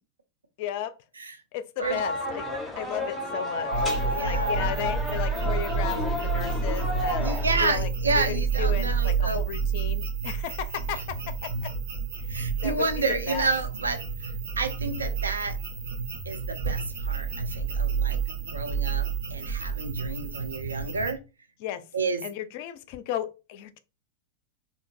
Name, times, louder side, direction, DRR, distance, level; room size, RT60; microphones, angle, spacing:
voice 1, 0.6-0.9 1.5-2.5 2.8-7.2 7.6-7.9 8.1-11.7 12.6-13.5 21.6-21.9 22.2-23.8, left 10 dB, 50° left, 0.4 m, -35 dB
sound 1, 1.8-7.7, left 1 dB, 5° left, 1.1 m, -31 dB
sound 2, 3.7-21.1, right 5 dB, 60° right, 0.9 m, -29 dB
voice 2, 4.1-4.5 7.2-9.4 12.3-14.0 14.6-15.6 16.3-18.2 18.5-19.1 19.3-21.2 21.9-22.2, right 3 dB, 75° right, 0.5 m, -30 dB
3.7 x 2.7 x 2.5 m
figure-of-eight pair, 90°, 0 cm